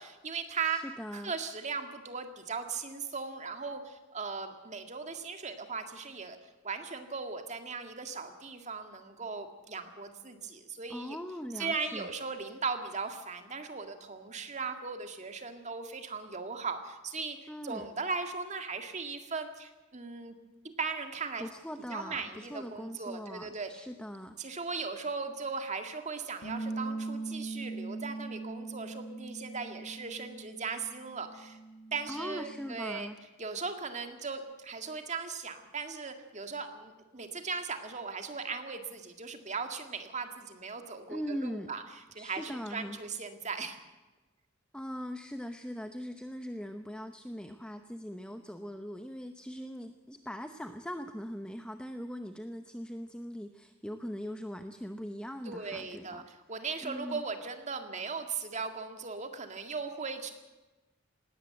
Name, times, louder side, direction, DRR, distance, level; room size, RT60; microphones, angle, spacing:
voice 1, 0.0-6.4 6.6-11.2 11.6-20.4 20.8-21.5 21.9-23.9 24.4-31.6 31.9-33.1 33.4-41.8 42.1-43.8 55.5-60.3, right 4 dB, 35° right, 6 dB, 2.0 m, -38 dB
voice 2, 0.6-1.3 10.9-12.1 17.5-17.9 21.4-24.4 32.1-33.2 41.1-41.7 42.2-43.0 44.7-56.2 56.8-57.2, equal, 5° left, 7 dB, 0.8 m, -41 dB
sound 1, 26.4-32.7, right 3 dB, 65° left, 4.7 m, -41 dB
19.5 x 17.5 x 7.7 m, 1.1 s
head